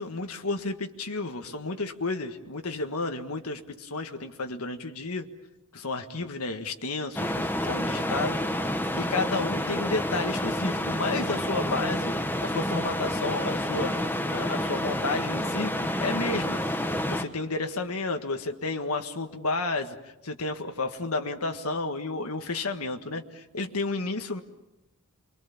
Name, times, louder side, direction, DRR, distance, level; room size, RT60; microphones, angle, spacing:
voice 1, 0.0-5.3 5.7-8.4 8.9-12.1 12.4-14.0 14.3-16.6 17.1-24.4, left 3 dB, 85° left, 6 dB, 1.6 m, -31 dB
sound 1, 7.2-17.3, left 1 dB, 10° left, 1.3 m, -29 dB
28.0 x 23.5 x 7.2 m, 0.94 s
head